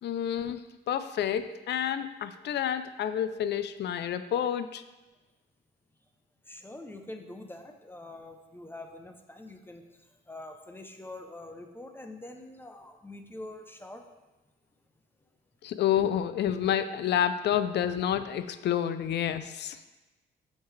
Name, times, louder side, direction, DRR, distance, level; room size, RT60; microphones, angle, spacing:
voice 1, 0.0-4.8 15.6-19.8, left 9 dB, 60° left, 12 dB, 0.4 m, -29 dB
voice 2, 6.5-9.8 10.3-14.0, left 2 dB, 10° left, 5 dB, 0.6 m, -45 dB
6.5 x 4.6 x 3.2 m, 1.1 s
cardioid pair, 90°, 20 cm